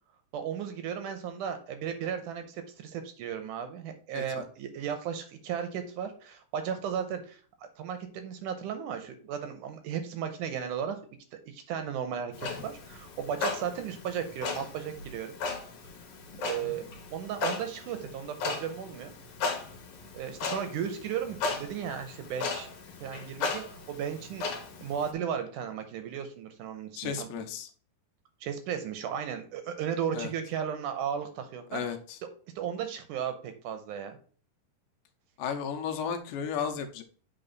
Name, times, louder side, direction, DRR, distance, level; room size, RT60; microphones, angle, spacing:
voice 1, 0.3-7.4 7.8-11.0 11.5-15.3 16.4-19.1 20.1-22.7 23.0-24.4 24.8-27.4 28.4-31.8 32.6-34.2, right 8 dB, 75° right, 8 dB, 2.1 m, -35 dB
Clock, 12.3-25.1, left 4 dB, 60° left, 2.3 m, -37 dB
voice 2, 27.0-27.7 30.1-30.3 31.7-32.2 35.4-37.0, left 7 dB, 85° left, 6 dB, 2.4 m, -34 dB
8.0 x 3.8 x 4.0 m, 0.43 s
omnidirectional pair, 4.0 m